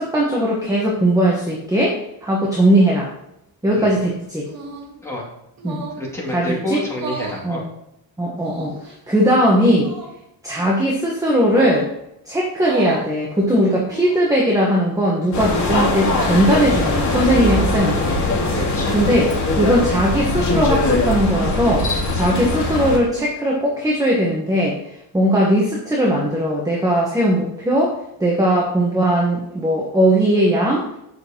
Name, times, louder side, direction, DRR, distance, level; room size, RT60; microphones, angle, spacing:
voice 1, 0.0-3.1 3.6-4.5 5.6-5.8 6.3-6.8 7.4-7.6 8.2-8.7 9.1-9.9 10.4-11.9 12.2-18.1 18.9-24.8 25.1-27.9 28.2-30.8, equal, 10° right, -3 dB, 1.3 m, -18 dB
sound 1, 4.5-5.0 5.6-6.1 6.9-7.4 8.4-8.9 9.8-10.1 11.5-11.9 12.5-13.1 13.7-14.3, right 5 dB, 55° right, 1.7 m, -32 dB
voice 2, 6.0-7.6 18.5-19.0, left 1 dB, 5° left, -5 dB, 2.5 m, -28 dB
sound 2, 15.3-23.0, left 2 dB, 45° left, 3.0 m, -21 dB
8.0 x 6.3 x 3.0 m, 0.83 s
cardioid pair, 130°, 40 cm